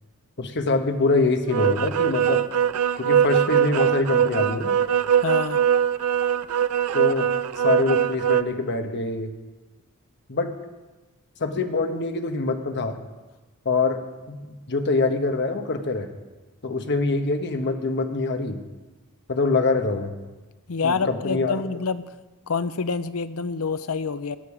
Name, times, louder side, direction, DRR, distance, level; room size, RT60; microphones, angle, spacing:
voice 1, 0.4-2.4 3.0-4.8 6.9-7.3 7.6-9.3 10.3-10.5 11.4-13.0 13.6-14.0 14.3-14.4 14.7-16.1 16.6-18.6 19.3-20.1 20.8-21.7, left 3 dB, 55° left, 6 dB, 1.2 m, -24 dB
sound 1, 1.5-8.4, right 9 dB, 90° right, 0.5 m, -21 dB
voice 2, 5.2-5.6 20.7-22.0 22.5-24.4, left 5 dB, 70° left, 13 dB, 0.6 m, -27 dB
16.5 x 10.5 x 4.9 m, 1.2 s
head